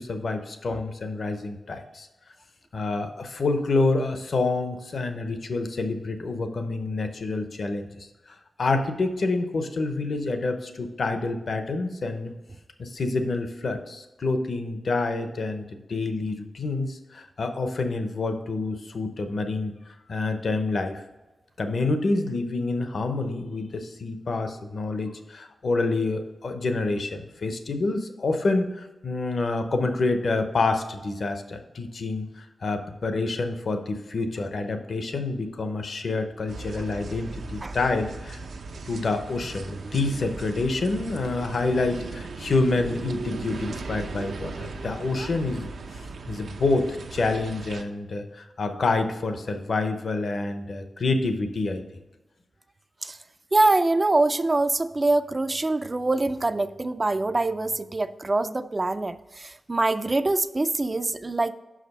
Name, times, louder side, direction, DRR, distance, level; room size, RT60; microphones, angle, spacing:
voice 1, 0.0-2.1 2.7-12.3 12.8-21.0 21.6-38.4 38.9-51.8, left 3 dB, 60° left, 7 dB, 0.8 m, -27 dB
sound 1, 36.5-47.8, right 3 dB, 80° right, 0.6 m, -37 dB
voice 2, 53.5-61.5, right 2 dB, 25° right, 13 dB, 0.3 m, -24 dB
6.0 x 5.0 x 5.4 m, 1.1 s
wide cardioid pair, 125°, 0 cm